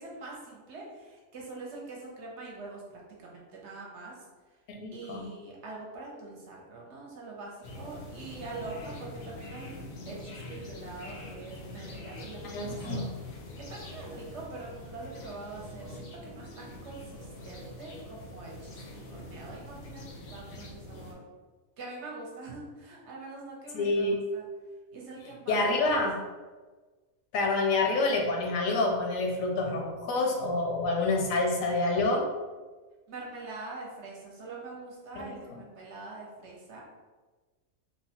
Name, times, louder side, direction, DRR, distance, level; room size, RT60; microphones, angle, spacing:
voice 1, 0.0-4.2 4.5-4.6 4.9-9.7 10.1-13.1 13.6-21.3 21.8-24.1 24.3-24.4 24.9-25.9 33.1-36.8, right 3 dB, 65° right, -3 dB, 0.9 m, -44 dB
voice 2, 4.7-5.3 12.5-13.0 23.7-24.2 25.5-26.2 27.3-32.2 35.2-35.6, left 2 dB, 80° left, 1 dB, 1.0 m, -27 dB
sound 1, 7.6-21.1, left 1 dB, 65° left, 0.6 m, -44 dB
2.9 x 2.1 x 2.8 m, 1.3 s
omnidirectional pair, 1.4 m